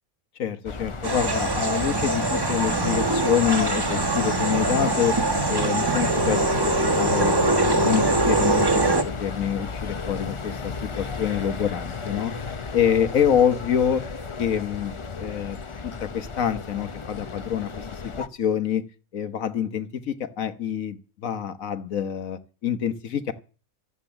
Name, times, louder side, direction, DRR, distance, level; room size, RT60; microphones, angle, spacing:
voice 1, 0.4-5.2 5.5-7.4 7.6-12.3 12.7-14.0 14.4-15.6 15.8-18.8 19.1-23.3, left 9 dB, 75° left, 11 dB, 1.5 m, -26 dB
sound 1, 0.7-18.3, left 4 dB, 30° left, 0.5 m, -34 dB
sound 2, 1.0-9.0, right 2 dB, 20° right, 1.2 m, -23 dB
13.5 x 8.2 x 8.9 m, 0.37 s
omnidirectional pair, 1.5 m